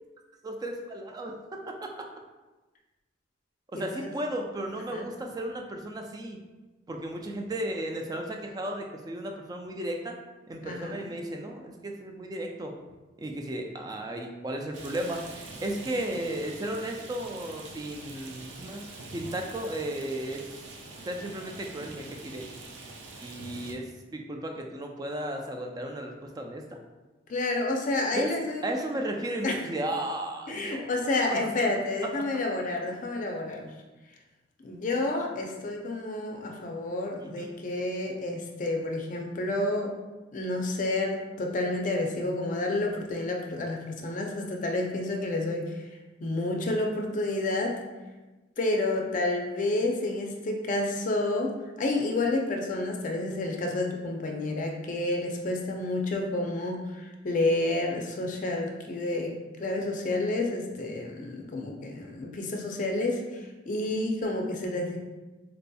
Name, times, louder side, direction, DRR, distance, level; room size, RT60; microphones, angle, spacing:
voice 1, 0.4-2.1 3.7-6.4 6.9-10.2 10.5-12.7 13.2-20.4 21.1-22.5 23.2-26.8 28.1-28.4 28.6-30.9 31.3-31.5 32.2-32.3 37.2-37.5, right 1 dB, 20° right, 2 dB, 0.3 m, -34 dB
voice 2, 3.7-4.1 4.9-5.1 10.6-11.1 27.3-28.8 29.4-29.6 30.5-33.7 34.6-39.9 40.3-45.6 46.2-47.7 48.6-51.5 51.8-59.3 59.6-63.2 63.7-65.0, left 2 dB, 45° left, 2 dB, 0.4 m, -29 dB
Rain, 14.7-23.7, right 2 dB, 80° right, 0.5 m, -44 dB
4.0 x 2.7 x 2.2 m, 1.2 s
head